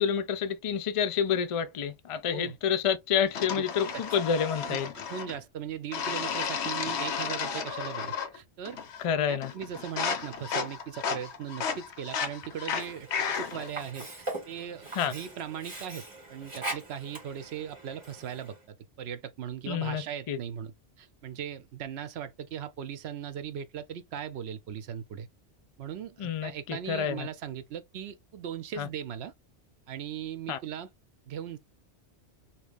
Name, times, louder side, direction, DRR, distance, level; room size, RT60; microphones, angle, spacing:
voice 1, 0.0-4.9 9.0-9.5 14.9-15.1 19.7-20.4 26.2-27.3 28.8-28.9 30.5-30.6, left 7 dB, 55° left, 0.3 m, -29 dB
voice 2, 2.3-2.6 3.5-3.6 3.9-4.0 4.7-8.8 9.3-13.1 13.4-25.3 25.8-29.3 29.9-30.9 31.3-31.6, right 9 dB, 75° right, 0.8 m, -39 dB
sound 1, 3.3-5.4 5.9-8.4 8.6-9.1 9.4-13.7, left 6 dB, 80° left, 0.9 m, -33 dB
Sink (filling or washing), 12.7-18.6, right 2 dB, 25° right, 1.7 m, -41 dB
2.9 x 2.5 x 3.4 m
omnidirectional pair, 1.1 m